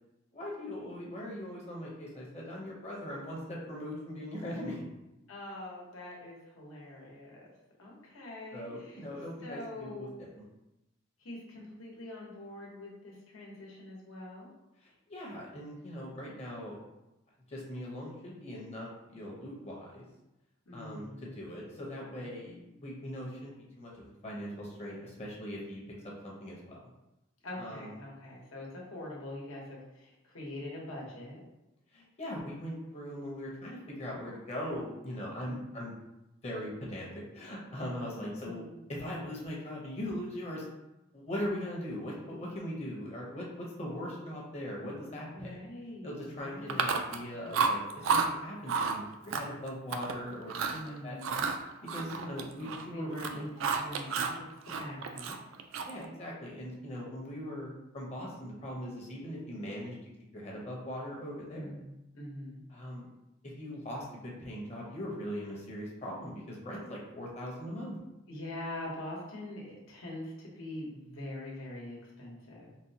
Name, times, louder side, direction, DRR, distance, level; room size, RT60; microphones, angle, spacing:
voice 1, 0.3-4.8 8.5-10.5 14.8-16.8 17.5-20.1 20.7-25.8 26.2-26.8 27.6-28.0 31.9-35.9 36.4-37.1 37.3-38.6 38.9-40.6 41.1-45.6 46.0-51.2 51.8-53.4 55.9-59.9 60.3-61.7 62.7-63.0 63.4-68.0, equal, 30° left, -3 dB, 0.7 m, -40 dB
voice 2, 5.3-7.5 7.8-9.0 9.4-10.2 11.2-14.5 20.7-21.4 22.2-22.3 27.4-31.4 35.4-35.8 38.2-38.9 45.3-46.9 50.7-51.5 52.9-53.5 53.8-54.5 54.8-55.3 61.5-62.6 68.3-72.7, left 1 dB, 90° left, -4 dB, 1.0 m, -43 dB
Chewing mastication, 46.7-47.2 47.5-48.3 48.7-49.0 49.3-50.1 50.5-50.8 51.2-52.9 53.1-54.4 54.7-56.0, right 5 dB, 65° right, 0.3 m, -31 dB
4.0 x 2.1 x 2.7 m, 0.94 s
head